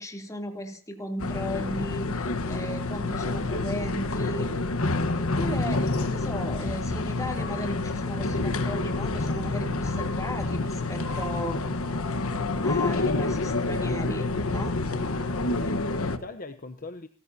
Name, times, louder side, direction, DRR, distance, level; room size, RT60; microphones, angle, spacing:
voice 1, 0.0-4.5 5.1-11.6 12.3-14.7, equal, 15° left, 3.1 m, -36 dB
sound 1, 1.2-16.2, left 2 dB, 65° left, 1.4 m, -28 dB
voice 2, 14.9-17.1, left 3 dB, 40° left, 1.0 m, -42 dB
29.5 x 14.5 x 2.8 m
head